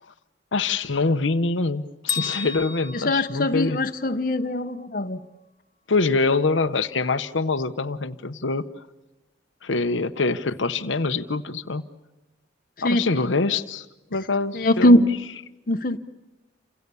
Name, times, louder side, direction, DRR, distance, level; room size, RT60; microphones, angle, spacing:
voice 1, 0.5-3.8 5.9-8.6 9.6-11.9 12.8-13.8 14.1-15.1, left 3 dB, 85° left, 8 dB, 1.0 m, -24 dB
Bell, 2.1-4.1, left 7 dB, 25° left, 2.2 m, -33 dB
voice 2, 2.9-5.2 12.8-13.0 14.5-15.0 15.7-16.0, left 1 dB, 45° left, 7 dB, 1.1 m, -21 dB
29.5 x 27.5 x 7.1 m, 1.0 s
head